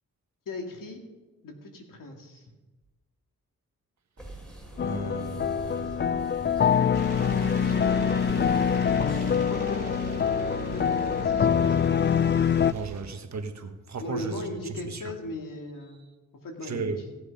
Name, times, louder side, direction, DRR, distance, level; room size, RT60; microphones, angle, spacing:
voice 1, 0.5-1.0 1.4-2.5 7.6-8.3 9.5-9.9 10.6-11.9 14.0-16.1 16.4-17.1, left 1 dB, 80° left, 2 dB, 2.4 m, -38 dB
sound 1, 4.2-9.4, right 1 dB, 5° left, 4.0 m, -43 dB
sound 2, 4.8-12.7, left 8 dB, 35° left, 0.4 m, -24 dB
voice 2, 4.8-6.8 12.7-15.0 16.6-17.0, right 4 dB, 55° right, 6 dB, 1.5 m, -36 dB
sound 3, 6.9-13.0, right 9 dB, 75° right, 2.3 m, -39 dB
17.0 x 7.9 x 5.3 m, 1.2 s
cardioid pair, 75°, 32 cm